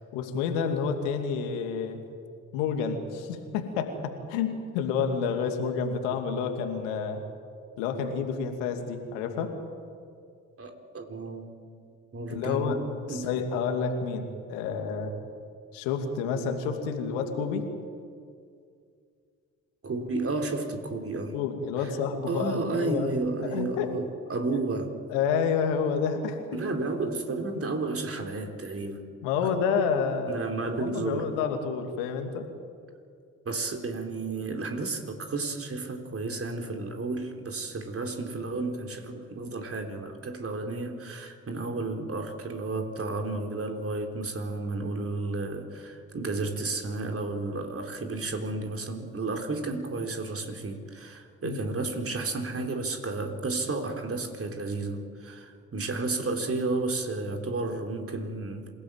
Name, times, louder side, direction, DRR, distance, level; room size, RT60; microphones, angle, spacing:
voice 1, 0.1-2.0 2.5-7.2 7.8-9.5 12.3-12.8 13.1-15.2 15.7-17.7 21.3-23.1 23.4-23.9 24.5-24.6 25.1-26.4 29.2-30.4 30.8-32.5 51.4-51.7, left 6 dB, 75° left, 5 dB, 2.6 m, -29 dB
voice 2, 10.6-11.4 12.1-12.8 13.1-13.3 19.8-21.4 22.3-25.0 26.5-29.1 30.3-31.4 33.5-58.7, right 3 dB, 35° right, 4 dB, 3.9 m, -32 dB
26.5 x 17.0 x 9.0 m, 2.3 s
hypercardioid pair, 45°, 38 cm